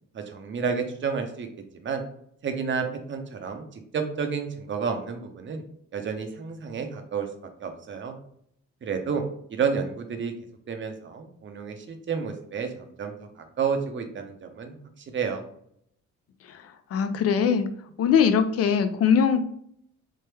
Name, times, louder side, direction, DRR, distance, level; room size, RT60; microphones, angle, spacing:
voice 1, 0.1-1.5 1.7-2.0 2.4-5.6 5.9-7.3 7.6-8.2 8.8-9.2 9.5-10.3 10.7-15.4, right 6 dB, 40° right, 5 dB, 0.6 m, -30 dB
voice 2, 16.9-17.7 18.0-19.4, left 7 dB, 55° left, 10 dB, 0.4 m, -21 dB
3.3 x 2.1 x 3.3 m, 0.67 s
cardioid pair, 90°, 30 cm